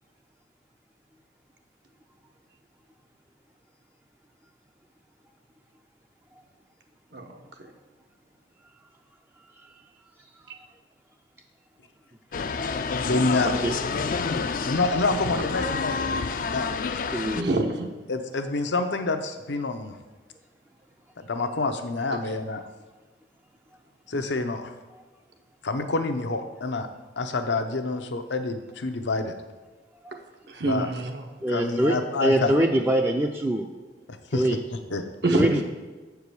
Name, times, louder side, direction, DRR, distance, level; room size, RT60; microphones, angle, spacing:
voice 1, 7.1-7.7 17.4-17.9 30.5-31.3 35.2-35.6, right 2 dB, 75° right, 4 dB, 1.1 m, -26 dB
sound 1, 12.3-17.4, left 4 dB, 50° left, 0.4 m, -28 dB
voice 2, 13.1-13.5 14.6-16.7 18.1-20.0 21.2-22.6 24.1-24.7 25.6-26.9 27.2-29.4 30.6-30.9 31.5-32.5 34.1-35.0, left 3 dB, 85° left, 7 dB, 0.8 m, -27 dB
voice 3, 17.1-17.5 30.0-30.2 31.4-33.7 34.3-34.6 35.3-35.6, right 1 dB, 10° right, 2 dB, 0.4 m, -24 dB
7.4 x 4.7 x 6.9 m, 1.3 s
head